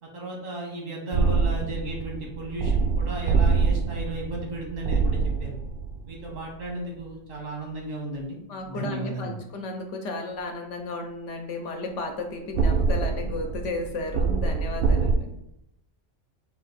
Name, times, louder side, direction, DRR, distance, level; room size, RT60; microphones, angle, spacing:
voice 1, 0.0-5.6 6.1-8.4 8.7-9.4, right 1 dB, 85° right, -1 dB, 1.6 m, -35 dB
sound 1, 1.1-6.7 12.5-15.2, right 4 dB, 60° right, 0.6 m, -25 dB
voice 2, 8.5-15.3, left 2 dB, 75° left, 3 dB, 0.9 m, -33 dB
4.4 x 2.4 x 4.0 m, 0.84 s
omnidirectional pair, 1.3 m